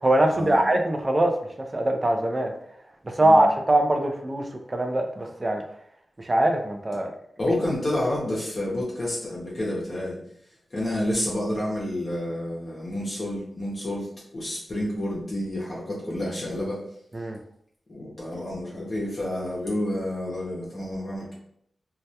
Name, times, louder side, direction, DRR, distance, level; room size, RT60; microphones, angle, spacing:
voice 1, 0.0-1.3 1.7-2.5 3.1-5.6 6.2-7.1 17.1-17.4, right 1 dB, 25° right, 3 dB, 0.3 m, -22 dB
voice 2, 7.4-10.2 10.7-14.1 14.3-16.8 17.9-21.3, left 1 dB, 35° left, -6 dB, 0.6 m, -29 dB
2.2 x 2.1 x 2.7 m, 0.69 s
wide cardioid pair, 130°, 0 cm